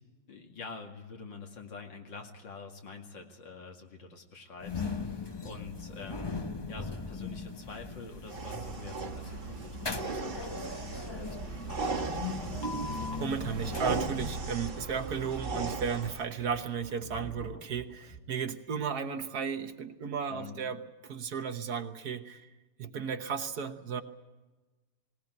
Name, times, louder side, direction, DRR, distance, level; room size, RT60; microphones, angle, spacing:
voice 1, 0.3-6.4 6.7-12.5 20.3-20.6, left 4 dB, 75° left, 3 dB, 2.9 m, -47 dB
sound 1, 4.6-14.8, left 4 dB, 25° left, 0.5 m, -39 dB
sound 2, 8.3-16.2, right 4 dB, 30° right, 1.5 m, -37 dB
sound 3, 11.0-18.2, right 3 dB, 10° left, 1.4 m, -47 dB
voice 2, 13.2-22.5 22.8-24.0, right 6 dB, 60° right, 8 dB, 1.5 m, -34 dB
19.0 x 18.5 x 9.4 m, 1.2 s
omnidirectional pair, 2.0 m